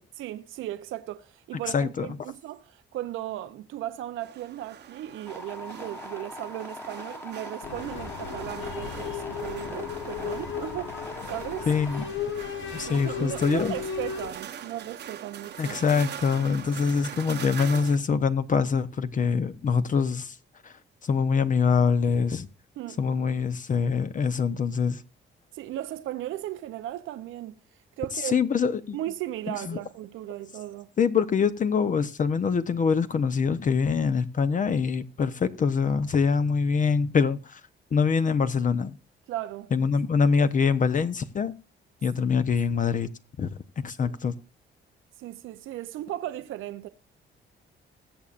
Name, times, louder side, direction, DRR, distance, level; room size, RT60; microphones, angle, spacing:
voice 1, 0.1-11.0 11.3-11.7 12.9-15.8 22.8-23.0 25.5-27.6 28.0-28.4 28.9-30.9 39.3-39.7 44.0-44.2 45.2-46.9, right 13 dB, 85° right, 0.7 m, -36 dB
voice 2, 1.7-2.1 11.7-12.0 12.7-13.7 15.6-20.4 20.6-20.8 21.0-22.5 23.0-25.0 28.1-29.0 29.7-29.8 31.0-37.6 37.9-39.0 39.7-41.5 42.0-43.1 43.4-43.5 43.8-44.3, left 5 dB, 40° left, 0.8 m, -24 dB
sound 1, 4.2-18.0, right 9 dB, 60° right, 1.0 m, -43 dB
sound 2, 5.3-12.1, left 2 dB, 10° left, 1.3 m, -42 dB
sound 3, 7.6-14.4, left 7 dB, 75° left, 1.3 m, -35 dB
20.5 x 7.2 x 2.5 m
cardioid pair, 90°, 20 cm